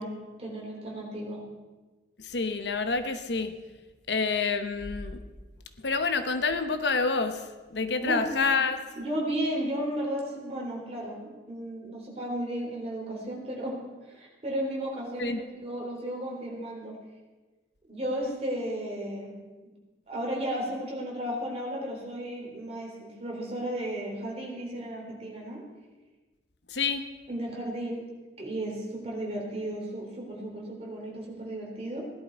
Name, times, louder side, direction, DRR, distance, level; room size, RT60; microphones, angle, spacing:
voice 1, 0.0-1.4 8.0-8.3 9.0-13.8 14.1-17.0 17.9-19.3 20.1-25.6 27.3-28.0 28.4-32.1, right 1 dB, 35° right, -2 dB, 3.6 m, -34 dB
voice 2, 2.2-3.6 4.1-5.2 5.8-8.8 15.2-15.4 26.7-27.1, left 4 dB, 80° left, 9 dB, 1.0 m, -28 dB
17.0 x 11.5 x 4.6 m, 1.2 s
head